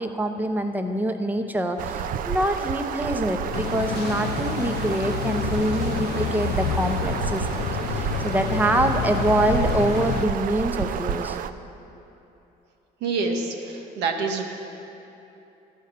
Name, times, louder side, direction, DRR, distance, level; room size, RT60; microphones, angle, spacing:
voice 1, 0.0-7.5 7.9-11.4, right 1 dB, 10° right, 6 dB, 0.7 m, -25 dB
sound 1, 1.8-11.5, right 8 dB, 55° right, 0.4 m, -30 dB
sound 2, 3.5-10.3, left 10 dB, 75° left, 0.4 m, -29 dB
voice 2, 13.0-14.4, right 4 dB, 85° right, 3 dB, 1.1 m, -26 dB
12.0 x 5.6 x 6.6 m, 2.9 s
cardioid pair, 110°, 17 cm